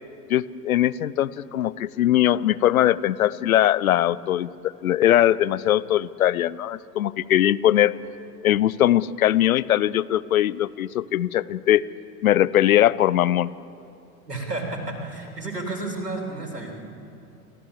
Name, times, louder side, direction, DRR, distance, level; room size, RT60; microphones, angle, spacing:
voice 1, 0.3-7.9 8.4-11.8 12.2-13.5, left 12 dB, 65° left, 18 dB, 0.7 m, -21 dB
voice 2, 14.3-16.7, right 2 dB, 85° right, 1 dB, 3.6 m, -31 dB
29.0 x 14.5 x 7.4 m, 2.7 s
figure-of-eight pair, 90°, 47 cm